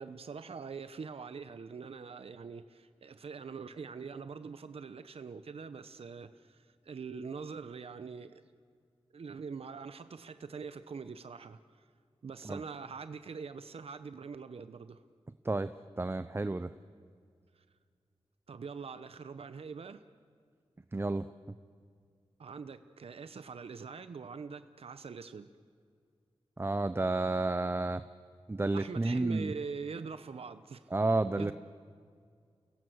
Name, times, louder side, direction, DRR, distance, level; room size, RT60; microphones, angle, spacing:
voice 1, 0.0-8.4 9.1-11.9 12.2-15.0 17.6-17.7 18.5-20.0 22.4-25.5 28.7-30.9 31.4-31.5, right 5 dB, 70° right, 11 dB, 0.9 m, -43 dB
voice 2, 15.4-16.7 20.9-21.3 26.6-28.0 28.5-29.5 30.9-31.5, right 2 dB, 25° right, 12 dB, 0.7 m, -31 dB
30.0 x 17.0 x 8.0 m, 2.1 s
wide cardioid pair, 80°, 10 cm